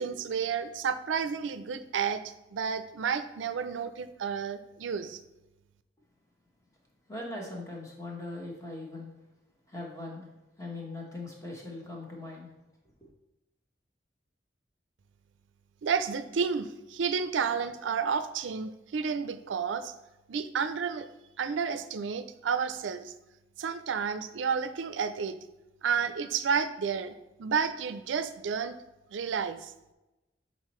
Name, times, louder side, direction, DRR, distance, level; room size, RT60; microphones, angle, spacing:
voice 1, 0.0-5.2 15.8-19.9 20.3-21.1 21.4-23.1 23.6-25.4 25.8-27.1 27.4-28.7 29.1-29.7, right 6 dB, 90° right, 11 dB, 0.4 m, -31 dB
voice 2, 7.1-9.1 9.7-10.3 10.6-12.5, left 2 dB, 15° left, -2 dB, 1.1 m, -40 dB
7.4 x 4.1 x 3.1 m, 0.99 s
head